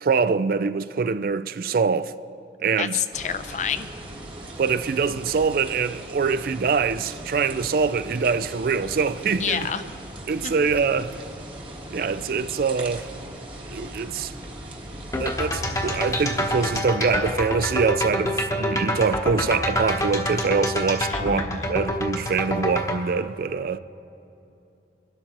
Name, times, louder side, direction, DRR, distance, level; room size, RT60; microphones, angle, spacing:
voice 1, 0.0-2.1 2.6-3.0 4.6-9.9 10.3-11.2 11.9-13.1 13.7-14.3 15.2-23.8, right 5 dB, 55° right, 0.3 m, -24 dB
voice 2, 2.8-3.9 9.4-9.8 10.4-10.5 21.1-21.7, left 8 dB, 40° left, 0.5 m, -28 dB
sound 1, 3.1-16.8, right 1 dB, 30° right, 1.3 m, -39 dB
sound 2, 15.1-23.0, left 1 dB, 20° left, 1.0 m, -27 dB
23.0 x 12.5 x 3.0 m
head